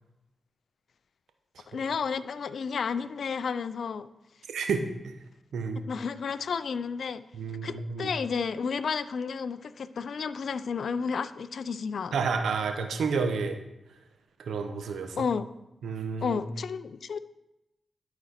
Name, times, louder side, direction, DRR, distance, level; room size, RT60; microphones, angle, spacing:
voice 1, 1.7-4.1 5.9-7.2 7.6-12.2 15.2-15.5 16.2-17.2, left 5 dB, 70° left, 0.4 m, -32 dB
voice 2, 4.5-5.1 5.5-5.8 7.3-8.1 12.1-13.6 14.4-15.3 15.8-16.4, right 5 dB, 80° right, 0.9 m, -30 dB
11.5 x 4.2 x 4.3 m
supercardioid pair, 45°, 0 cm